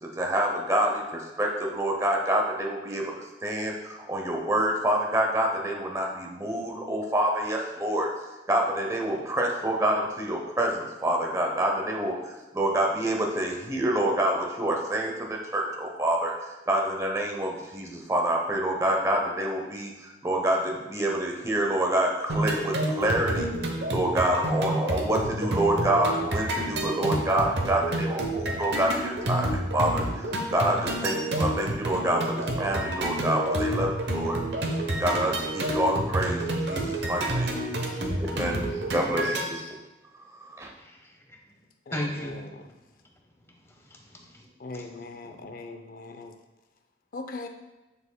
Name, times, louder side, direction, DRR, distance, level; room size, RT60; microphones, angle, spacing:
voice 1, 0.0-8.1 8.5-23.5 23.9-34.4 35.0-37.6 38.2-38.6 38.9-39.7 40.4-40.7, right 1 dB, 15° right, 0 dB, 0.8 m, -27 dB
sound 1, 22.3-39.4, right 1 dB, 70° right, 0.9 m, -29 dB
voice 2, 40.8-41.4 41.9-42.4 43.8-44.5 44.7-45.5, equal, 15° left, 1 dB, 0.8 m, -37 dB
voice 3, 41.9-42.6 44.6-46.3 47.1-47.5, left 3 dB, 50° left, 6 dB, 0.5 m, -40 dB
6.9 x 6.8 x 2.2 m, 1.1 s
head